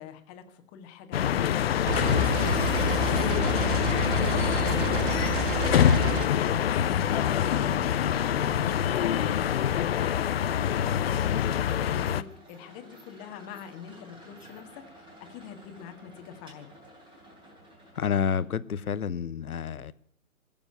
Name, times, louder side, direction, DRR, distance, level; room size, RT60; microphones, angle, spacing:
voice 1, 0.0-9.5 9.8-11.5 11.8-16.7, left 8 dB, 25° left, 6 dB, 1.7 m, -44 dB
sound 1, 1.1-12.2, left 9 dB, 45° left, 0.6 m, -25 dB
sound 2, 1.9-6.3, right 12 dB, 35° right, 0.7 m, -31 dB
sound 3, 4.3-18.7, equal, 10° right, 3.3 m, -55 dB
voice 2, 17.9-19.9, left 7 dB, 80° left, 16 dB, 1.0 m, -29 dB
20.0 x 7.1 x 9.5 m, 0.63 s
hypercardioid pair, 135°, 43 cm